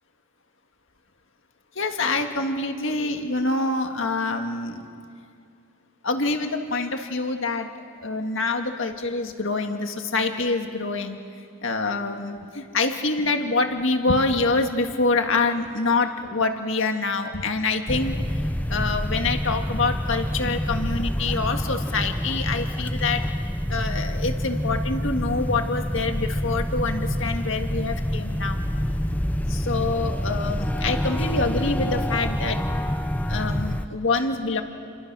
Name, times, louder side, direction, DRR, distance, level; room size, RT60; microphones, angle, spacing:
voice 1, 1.8-4.8 6.0-7.7 8.0-11.2 11.6-23.3 23.7-28.6 29.4-32.6 33.3-34.6, left 3 dB, 60° left, 5 dB, 1.9 m, -26 dB
sound 1, 17.9-33.9, equal, 5° left, 0.6 m, -27 dB
29.5 x 24.5 x 6.2 m, 2.3 s
head